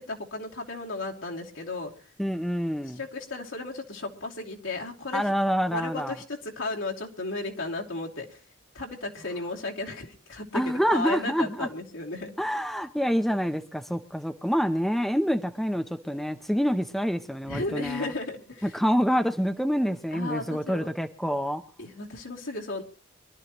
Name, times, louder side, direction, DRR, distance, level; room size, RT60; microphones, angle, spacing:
voice 1, 0.0-1.9 3.0-5.2 5.7-8.4 8.7-12.3 17.5-18.8 20.1-20.9 21.8-22.8, left 2 dB, 75° left, -1 dB, 2.7 m, -34 dB
voice 2, 2.2-3.0 5.1-6.1 10.5-11.7 12.4-18.1 18.7-21.6, equal, ahead, 7 dB, 0.6 m, -27 dB
25.0 x 12.5 x 3.0 m, 0.37 s
head